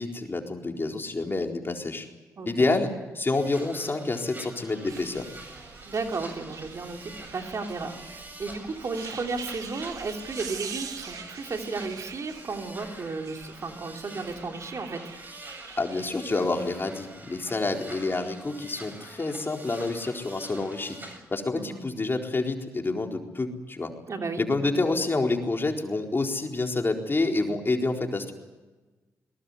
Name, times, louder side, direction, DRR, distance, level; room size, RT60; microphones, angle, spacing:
voice 1, 0.0-2.1 2.5-5.3 15.8-23.9 24.4-28.3, left 3 dB, 35° left, 2 dB, 4.2 m, -28 dB
voice 2, 2.4-2.7 5.8-15.0 21.5-21.8 24.1-24.7, right 3 dB, 55° right, 4 dB, 3.2 m, -34 dB
sound 1, 3.4-21.2, right 1 dB, 30° right, 7.8 m, -46 dB
sound 2, 4.8-18.3 19.1-19.7 20.2-20.4, right 6 dB, 70° right, 2.6 m, -44 dB
22.5 x 19.5 x 9.7 m, 1.2 s
supercardioid pair, 45°, 6 cm